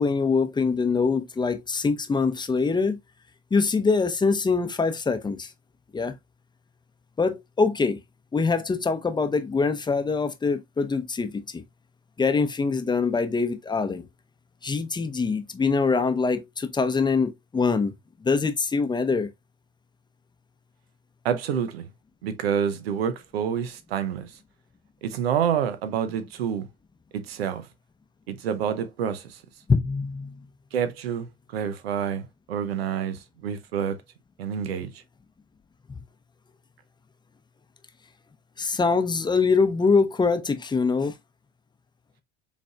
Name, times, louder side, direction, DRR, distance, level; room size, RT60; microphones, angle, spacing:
voice 1, 0.0-3.0 3.5-5.5 5.9-6.1 7.2-8.0 8.3-11.6 12.2-14.1 14.6-17.9 18.2-19.3 29.7-30.4 35.9-36.0 38.6-41.1, left 4 dB, 15° left, 0.7 m, -24 dB
voice 2, 21.2-21.9 22.2-24.3 25.0-26.7 27.1-27.7 28.3-29.4 30.7-34.0 34.4-34.9, right 8 dB, 90° right, 0.7 m, -28 dB
5.1 x 3.3 x 2.3 m
hypercardioid pair, 80°, 30 cm